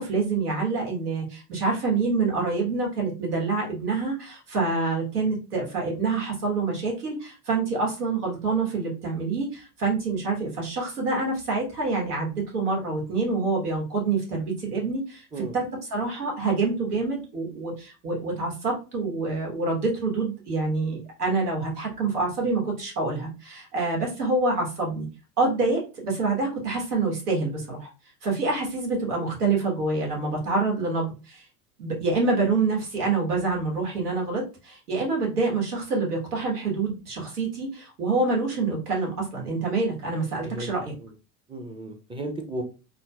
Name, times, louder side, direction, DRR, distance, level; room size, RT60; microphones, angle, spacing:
voice 1, 0.0-15.2 15.5-15.6 15.9-25.1 25.4-27.9 28.2-31.4 31.8-40.9, right 3 dB, 85° right, -1 dB, 1.3 m, -26 dB
voice 2, 40.4-41.1 41.5-42.6, right 1 dB, 10° right, 5 dB, 0.5 m, -35 dB
3.8 x 2.0 x 2.2 m, 0.32 s
hypercardioid pair, 80°, 45 cm